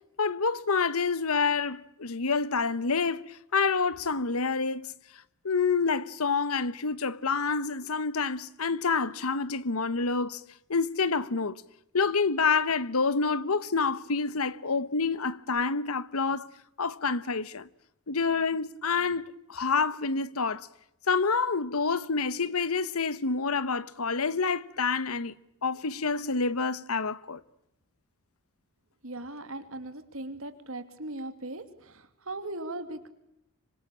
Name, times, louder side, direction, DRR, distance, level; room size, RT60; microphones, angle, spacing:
voice 1, 0.2-4.9 5.4-10.4 10.7-11.6 11.9-16.5 16.8-17.7 18.1-20.7 21.1-25.3 25.6-27.4, left 4 dB, 80° left, 1.1 m, -28 dB
voice 2, 29.0-33.1, right 2 dB, 65° right, 2.8 m, -39 dB
26.5 x 24.5 x 8.8 m
head